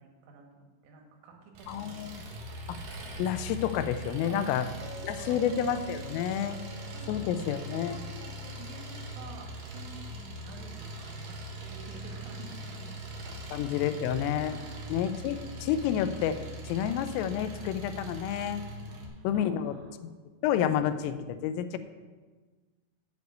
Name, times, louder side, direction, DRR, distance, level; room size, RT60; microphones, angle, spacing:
voice 1, 0.0-2.4 4.2-4.7 5.1-5.5 6.9-11.3 11.6-13.4 14.5-15.0 18.8-19.9, right 4 dB, 85° right, 1 dB, 4.2 m, -49 dB
Engine, 1.5-19.1, right 1 dB, 65° right, 2.3 m, -41 dB
voice 2, 1.7-2.1 2.7-2.8 3.2-4.7 5.0-6.6 7.1-8.0 13.5-14.6 14.9-16.4 16.7-18.6 19.2-19.8 20.4-21.8, left 9 dB, 85° left, 11 dB, 3.2 m, -29 dB
Chink clink, 4.8-8.8, left 5 dB, 60° left, 3.1 m, -48 dB
8.3 x 6.7 x 7.9 m, 1.3 s
omnidirectional pair, 5.8 m